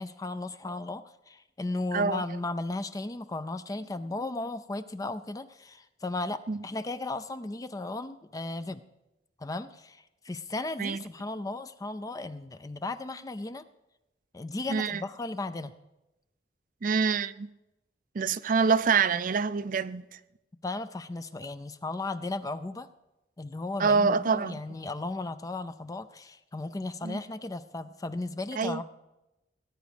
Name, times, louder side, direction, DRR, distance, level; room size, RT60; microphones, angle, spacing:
voice 1, 0.0-8.8 9.4-13.6 14.3-15.7 20.6-22.9 23.4-28.8, left 2 dB, 20° left, 0.4 m, -35 dB
voice 2, 1.9-2.2 6.5-6.6 10.8-11.0 14.7-15.0 16.8-17.5 18.1-20.2 23.8-24.6 27.0-27.2 28.6-28.8, right 5 dB, 45° right, 0.5 m, -26 dB
18.5 x 9.2 x 5.0 m
head